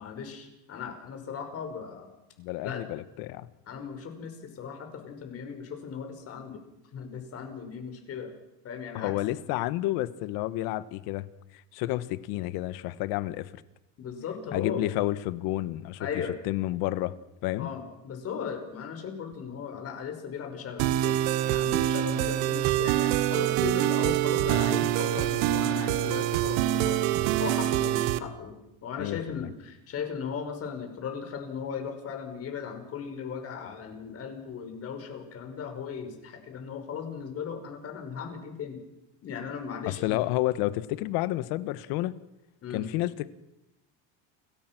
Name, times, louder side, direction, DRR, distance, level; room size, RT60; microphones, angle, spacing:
voice 1, 0.0-2.1 2.6-2.9 3.7-6.6 6.9-8.3 8.6-9.2 14.0-14.8 16.0-16.4 17.6-38.8 39.2-40.2 42.6-42.9, left 6 dB, 35° left, 6 dB, 5.6 m, -37 dB
voice 2, 2.4-3.5 8.9-11.3 11.7-13.5 14.5-16.0 16.4-17.1 17.4-17.7 29.0-29.5 39.9-42.1 42.7-43.3, left 16 dB, 65° left, 14 dB, 1.6 m, -30 dB
sound 1, 20.8-28.2, right 13 dB, 75° right, 1.6 m, -25 dB
30.0 x 22.5 x 6.2 m, 0.93 s
cardioid pair, 150°, 39 cm